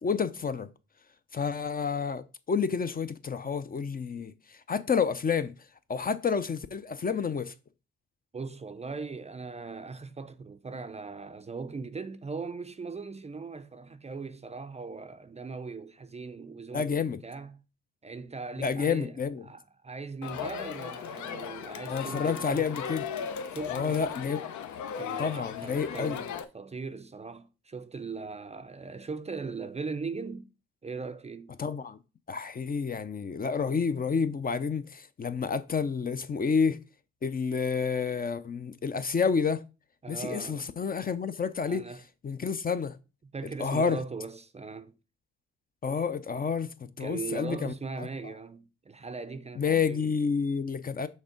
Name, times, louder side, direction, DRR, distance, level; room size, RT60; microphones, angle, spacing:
voice 1, 0.0-0.7 1.3-5.5 5.9-7.5 16.7-17.2 18.6-19.4 21.9-23.0 23.7-24.4 25.2-26.2 31.6-32.0 32.3-36.8 37.2-39.6 40.1-41.8 42.2-43.0 43.6-44.0 45.8-48.1 49.6-51.1, left 6 dB, 30° left, 0.5 m, -29 dB
voice 2, 8.3-17.6 18.0-19.2 19.4-22.7 23.5-24.2 25.0-30.5 30.8-31.5 40.0-40.6 41.6-42.0 43.3-44.9 47.0-50.1, right 4 dB, 20° right, 0.5 m, -39 dB
Crowd, 20.2-26.4, left 7 dB, 70° left, 0.8 m, -37 dB
6.4 x 3.5 x 5.1 m
cardioid pair, 90°, 30 cm